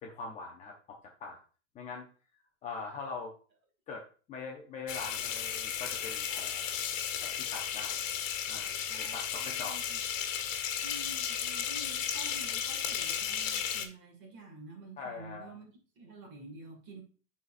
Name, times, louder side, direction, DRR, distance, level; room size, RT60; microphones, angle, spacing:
voice 1, 0.0-1.4 1.7-2.1 2.6-3.3 3.9-6.7 7.2-8.0 8.5-9.8 15.0-15.5, left 4 dB, 20° left, 0 dB, 0.7 m, -43 dB
sound 1, 4.9-13.9, left 8 dB, 85° left, 1.3 m, -34 dB
voice 2, 8.9-10.0 10.8-15.7 16.0-17.0, right 2 dB, 30° right, 1 dB, 2.1 m, -49 dB
12.5 x 4.2 x 2.5 m, 0.37 s
supercardioid pair, 155°, 38 cm